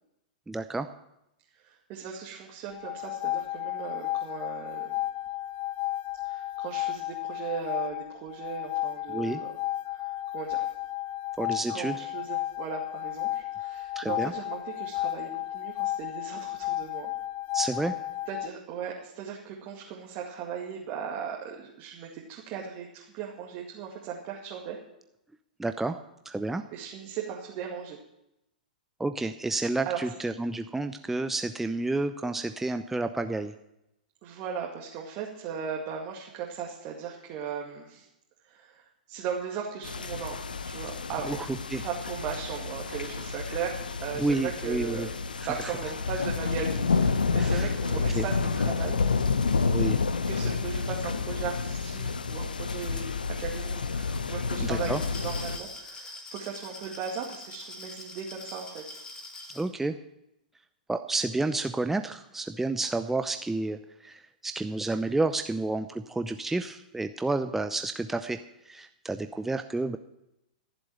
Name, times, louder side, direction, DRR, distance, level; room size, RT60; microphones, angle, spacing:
voice 1, 0.5-0.9 9.1-9.4 11.4-12.1 14.0-14.3 17.5-18.0 25.6-26.0 26.2-26.6 29.0-33.5 41.2-41.8 44.2-45.1 47.4-47.7 48.1-48.2 49.7-50.0 54.6-55.0 59.5-60.0 60.9-68.4 68.6-70.0, right 2 dB, 5° right, 8 dB, 0.6 m, -30 dB
voice 2, 1.5-5.0 6.2-9.5 9.9-10.7 11.7-17.1 18.3-24.8 26.7-28.0 29.8-30.2 34.2-38.1 38.4-49.2 49.5-49.7 50.2-53.1 53.4-59.0, right 7 dB, 40° right, -2 dB, 2.2 m, -37 dB
sound 1, 2.7-18.5, left 15 dB, 35° left, 0.5 m, -33 dB
sound 2, 39.8-55.6, left 4 dB, 80° left, 0.8 m, -29 dB
Glass, 54.6-59.7, left 2 dB, 15° left, 2.7 m, -44 dB
14.0 x 7.8 x 9.0 m, 0.87 s
figure-of-eight pair, 105°, 5 cm